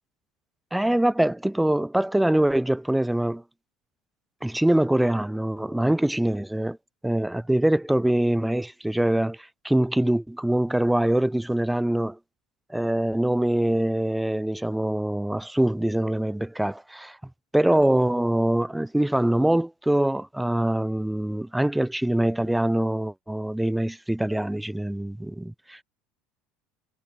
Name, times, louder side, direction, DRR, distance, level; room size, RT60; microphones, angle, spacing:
voice 1, 0.7-3.4 4.4-6.8 7.0-12.2 12.7-17.2 17.5-25.8, right 1 dB, 5° right, 1.5 m, -24 dB
hypercardioid pair, 70°, 0 cm